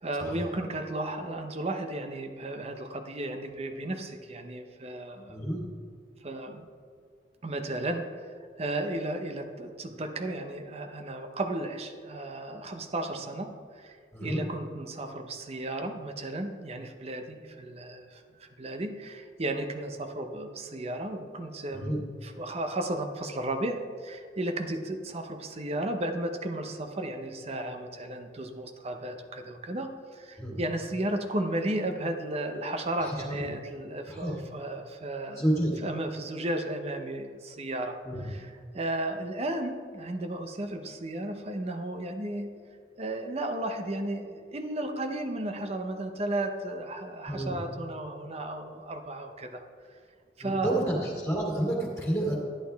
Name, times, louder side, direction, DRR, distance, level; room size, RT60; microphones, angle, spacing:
voice 1, 0.0-5.4 6.2-6.7 7.4-8.1 8.6-35.4 35.8-42.6 43.0-49.6 50.4-50.9, right 1 dB, 35° right, 6 dB, 0.7 m, -34 dB
voice 2, 5.3-5.7 14.1-14.5 21.7-22.0 30.4-30.6 33.0-33.5 34.1-34.4 35.3-35.7 38.0-38.2 47.3-47.5 50.4-52.3, right 1 dB, 15° left, -4 dB, 2.4 m, -30 dB
11.0 x 10.5 x 3.5 m, 2.1 s
head